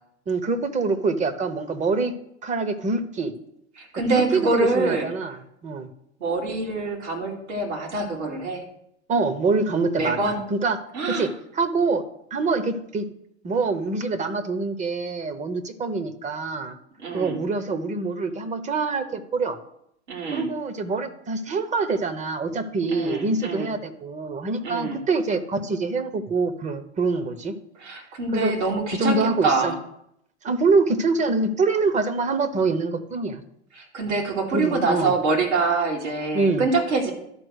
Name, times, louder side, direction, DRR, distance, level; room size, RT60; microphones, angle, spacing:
voice 1, 0.3-2.1 2.4-3.3 4.1-5.4 5.6-5.9 9.1-10.8 11.1-12.0 12.3-13.1 13.4-16.8 17.1-19.6 20.3-27.5 28.3-28.5 29.0-29.7 30.4-33.4 34.5-35.1 36.3-36.7, right 3 dB, 20° right, 11 dB, 0.9 m, -25 dB
voice 2, 3.7-5.1 6.2-8.6 10.0-10.4 10.9-11.3 17.0-17.4 20.1-20.5 22.9-23.7 24.6-25.0 27.8-29.7 33.7-37.1, right 3 dB, 80° right, -1 dB, 2.7 m, -25 dB
11.5 x 4.4 x 6.4 m, 0.76 s
hypercardioid pair, 105°, 34 cm